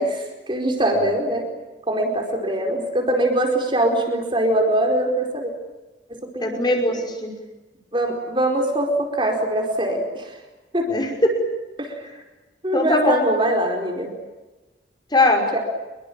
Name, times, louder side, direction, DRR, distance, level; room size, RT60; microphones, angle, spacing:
voice 1, 0.0-1.5 1.9-5.5 6.2-7.0 7.9-10.3 10.7-10.9 11.8-12.0 12.6-14.1 15.5-15.6, right 1 dB, 30° right, 2 dB, 4.6 m, -22 dB
voice 2, 6.4-7.3 10.9-11.4 12.7-13.2 15.1-15.5, left 1 dB, 25° left, 2 dB, 5.7 m, -20 dB
26.5 x 23.0 x 8.8 m, 1.1 s
head